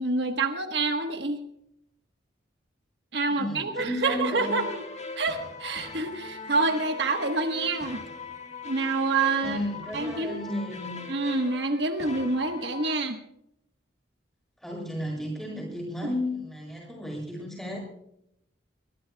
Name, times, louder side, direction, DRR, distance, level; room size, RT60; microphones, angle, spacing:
voice 1, 0.0-1.5 3.1-4.8 5.2-8.0 8.6-9.6 9.9-10.4 11.1-13.2, right 3 dB, 65° right, 5 dB, 1.3 m, -27 dB
voice 2, 3.3-4.6 9.4-11.0 14.6-17.8, left 1 dB, ahead, 0 dB, 7.1 m, -33 dB
sound 1, 4.1-12.9, left 4 dB, 35° left, 1.7 m, -41 dB
22.5 x 21.0 x 2.3 m, 0.75 s
head